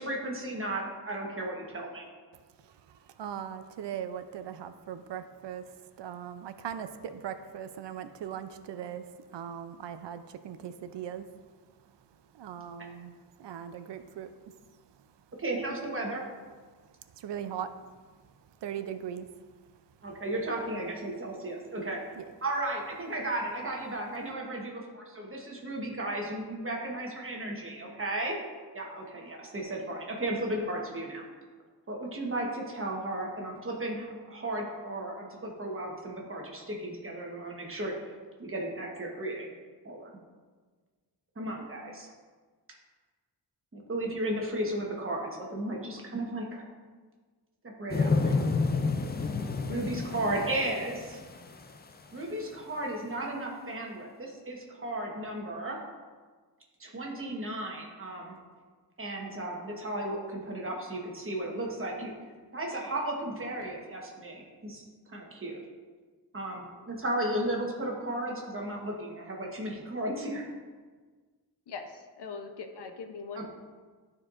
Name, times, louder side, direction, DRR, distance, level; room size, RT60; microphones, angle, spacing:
voice 1, 0.0-2.1 15.4-16.2 20.0-22.0 22.4-28.3 28.7-31.2 31.9-37.9 38.4-39.5 39.8-40.1 41.4-42.1 43.7-46.6 47.8-48.3 49.7-51.2 52.1-55.8 56.8-58.4 59.0-62.1 62.5-65.6 66.3-70.5 73.4-73.5, right 1 dB, 30° right, -1 dB, 1.1 m, -34 dB
voice 2, 2.3-15.3 16.8-20.0 22.2-22.3, right 9 dB, 80° right, 10 dB, 0.5 m, -41 dB
sound 1, 47.9-51.9 52.4-52.5, left 4 dB, 25° left, 0.3 m, -30 dB
voice 3, 71.7-73.4, left 5 dB, 70° left, 6 dB, 0.7 m, -41 dB
12.5 x 4.5 x 2.5 m, 1.4 s
wide cardioid pair, 175°, 42 cm